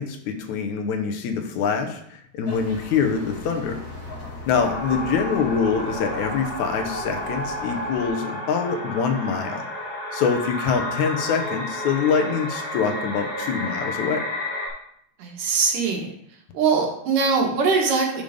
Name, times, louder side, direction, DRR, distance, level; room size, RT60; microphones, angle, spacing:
voice 1, 0.0-2.0 2.3-3.8 4.5-9.6 10.1-14.3, left 6 dB, 70° left, 5 dB, 2.1 m, -24 dB
sound 1, 2.4-8.1, left 2 dB, 30° left, 1.9 m, -39 dB
sound 2, 4.6-14.7, left 1 dB, 50° left, 3.5 m, -31 dB
voice 2, 15.2-16.1 16.5-18.2, right 5 dB, 75° right, 0 dB, 3.0 m, -22 dB
10.5 x 3.8 x 5.1 m, 0.71 s
omnidirectional pair, 3.7 m